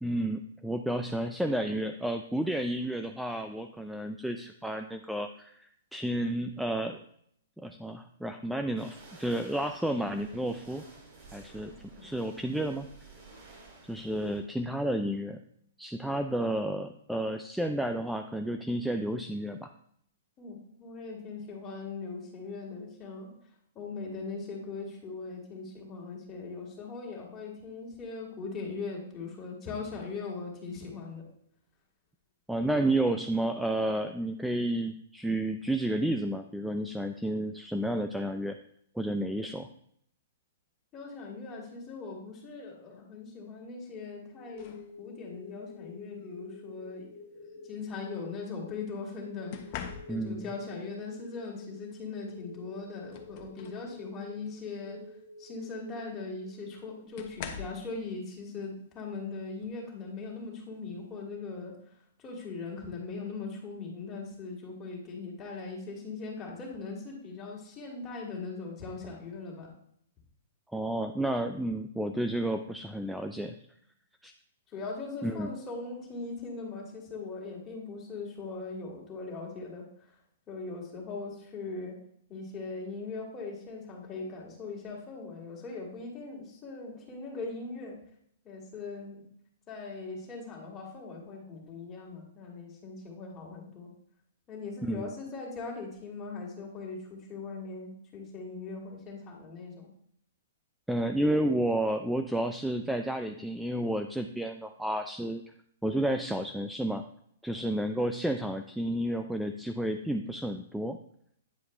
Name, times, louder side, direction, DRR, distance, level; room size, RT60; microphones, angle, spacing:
voice 1, 0.0-7.0 7.6-10.8 11.3-11.7 12.0-12.9 13.9-15.4 15.8-19.7 32.5-38.6 39.0-39.7 50.1-50.5 70.7-73.5 74.2-74.3 75.2-75.5 94.8-95.1 100.9-105.4 105.8-107.0 107.4-111.0, right 1 dB, ahead, 6 dB, 0.4 m, -31 dB
sound 1, 8.8-14.4, right 3 dB, 40° right, 2.9 m, -53 dB
voice 2, 11.6-12.0 20.4-23.3 23.7-31.2 40.9-49.8 50.1-55.0 55.4-61.7 62.2-69.7 74.7-79.9 80.5-82.0 82.3-88.0 88.4-89.2 89.7-93.9 94.5-99.9 107.5-107.7, left 4 dB, 25° left, -2 dB, 2.4 m, -40 dB
sound 2, 44.2-57.1, left 3 dB, 80° left, 1.5 m, -50 dB
sound 3, 44.6-44.9 46.2-46.4 49.5-50.5 52.3-52.4 52.8-53.9 54.4-54.6 56.0-56.1 57.2-57.9 59.6-59.8 60.3-60.6, left 8 dB, 45° left, 0.9 m, -43 dB
9.3 x 4.7 x 3.3 m, 0.68 s
hypercardioid pair, 130°, 0 cm